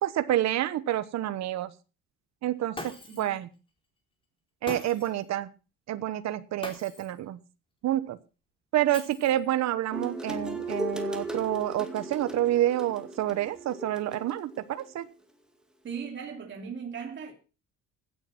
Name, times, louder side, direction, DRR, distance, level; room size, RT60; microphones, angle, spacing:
voice 1, 0.0-1.7 2.4-3.5 4.6-5.5 5.9-7.4 7.8-8.2 8.7-15.1, right 13 dB, 55° right, 1.1 m, -28 dB
Shatter, 2.7-3.4 4.7-5.2 6.6-7.2 8.9-9.6, left 1 dB, 15° left, 4.1 m, -41 dB
voice 2, 3.1-3.4 15.8-17.3, right 6 dB, 35° right, 2.8 m, -38 dB
sound 1, 9.9-14.9, right 1 dB, ahead, 2.2 m, -37 dB
16.5 x 8.9 x 5.9 m
cardioid pair, 145°, 32 cm